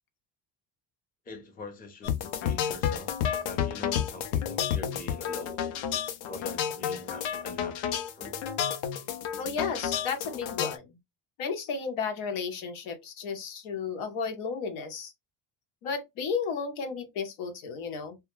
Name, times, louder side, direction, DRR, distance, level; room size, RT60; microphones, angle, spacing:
voice 1, 1.3-3.1 3.4-5.9 6.3-8.4, left 2 dB, 20° left, 0.5 m, -43 dB
sound 1, 2.0-10.8, left 9 dB, 65° left, 0.5 m, -31 dB
voice 2, 9.4-10.9 11.4-15.1 15.8-18.2, left 5 dB, 85° left, 0.9 m, -33 dB
2.3 x 2.1 x 3.0 m
cardioid pair, 155°, 48 cm